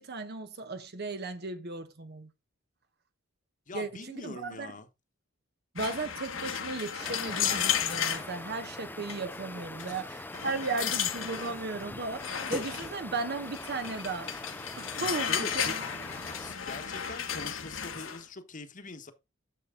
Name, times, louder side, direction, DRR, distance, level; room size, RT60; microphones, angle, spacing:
voice 1, 0.0-2.3 3.7-4.7 5.7-14.3 14.8-15.8, right 3 dB, 55° right, 1.0 m, -36 dB
voice 2, 3.7-4.9 9.9-10.2 15.2-15.7 16.4-19.1, left 3 dB, 40° left, 1.3 m, -43 dB
sound 1, 5.8-8.3 9.1-9.3 9.8-9.9 10.3-11.5 12.2-12.9 13.5-18.2, left 8 dB, 70° left, 1.5 m, -33 dB
sound 2, 7.0-16.6, left 2 dB, 10° left, 0.5 m, -42 dB
10.5 x 7.3 x 3.8 m
head